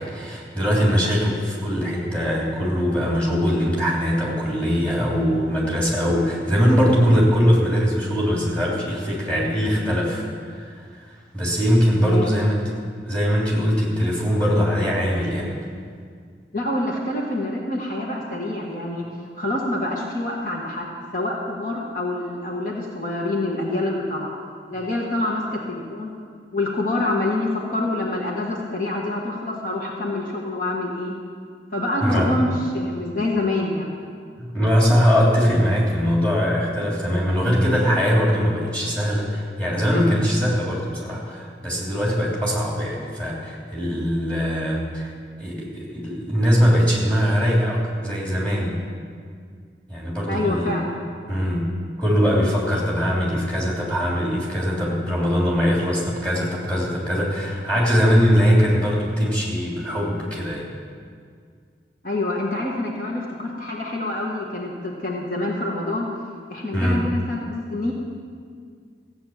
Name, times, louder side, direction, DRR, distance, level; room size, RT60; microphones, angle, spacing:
voice 1, 0.0-10.2 10.5-10.8 11.3-12.6 13.1-15.6 32.0-32.4 34.4-45.1 45.4-48.8 49.9-50.8 51.3-51.7 52.0-60.7 66.7-67.0, equal, 10° left, -4 dB, 3.2 m, -21 dB
voice 2, 12.0-12.4 16.5-24.3 24.7-26.1 26.5-31.1 31.7-33.9 50.3-51.0 62.0-66.1 66.5-67.9, left 2 dB, 50° left, -2 dB, 1.5 m, -26 dB
15.5 x 8.8 x 7.4 m, 2.1 s
head